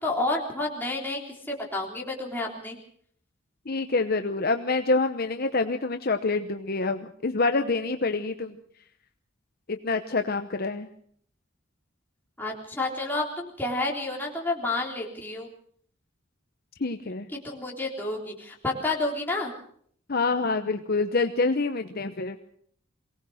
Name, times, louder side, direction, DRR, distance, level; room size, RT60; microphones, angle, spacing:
voice 1, 0.0-2.8 12.4-15.5 17.4-19.5, left 2 dB, 10° left, -2 dB, 3.6 m, -30 dB
voice 2, 3.7-8.6 9.7-10.9 16.8-17.3 20.1-22.4, left 3 dB, 45° left, 7 dB, 0.9 m, -26 dB
23.0 x 18.0 x 6.4 m, 0.63 s
head